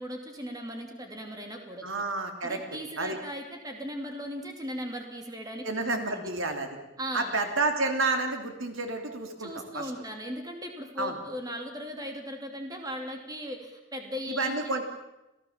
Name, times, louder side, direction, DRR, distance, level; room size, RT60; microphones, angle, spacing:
voice 1, 0.0-1.9 2.4-6.3 7.0-7.4 9.4-14.8, equal, 20° right, 3 dB, 2.8 m, -38 dB
voice 2, 1.8-2.6 3.0-3.2 5.6-6.7 7.1-9.9 11.0-11.2 14.3-14.8, right 3 dB, 80° right, 5 dB, 3.0 m, -30 dB
27.0 x 16.5 x 7.4 m, 0.95 s
head